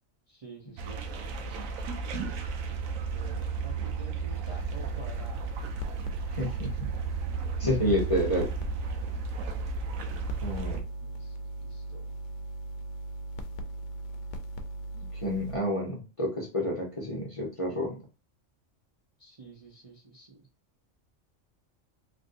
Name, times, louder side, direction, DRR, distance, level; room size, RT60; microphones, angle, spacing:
voice 1, 0.3-1.7 3.1-5.5 10.2-10.3 11.0-12.0 19.2-20.5, right 2 dB, 35° right, -4 dB, 0.6 m, -49 dB
sound 1, 0.8-10.8, right 5 dB, 85° right, 1.0 m, -34 dB
sound 2, 4.5-15.6, right 2 dB, 70° left, 0.9 m, -39 dB
voice 2, 6.3-6.9 7.6-8.5 10.4-10.8 15.1-18.0, equal, 30° left, -3 dB, 0.8 m, -29 dB
3.3 x 2.6 x 2.5 m, 0.33 s
omnidirectional pair, 1.4 m